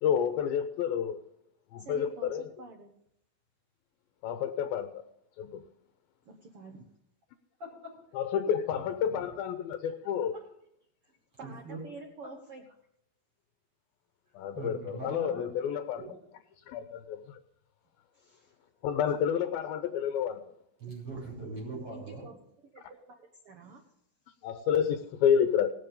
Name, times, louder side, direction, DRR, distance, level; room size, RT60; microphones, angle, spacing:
voice 1, 0.0-1.2 1.7-2.5 4.2-5.0 5.4-5.6 8.1-10.4 14.3-16.0 16.7-17.2 18.8-20.4 24.4-25.7, left 8 dB, 85° left, 7 dB, 2.6 m, -29 dB
voice 2, 1.8-2.9 6.2-7.0 11.4-12.6 18.1-18.5 21.9-22.3 22.6-23.9, right 4 dB, 65° right, 3 dB, 1.4 m, -48 dB
voice 3, 11.4-11.8 14.6-15.4 20.8-22.3, right 3 dB, 35° right, -2 dB, 6.3 m, -40 dB
18.5 x 7.4 x 5.3 m, 0.75 s
omnidirectional pair, 4.2 m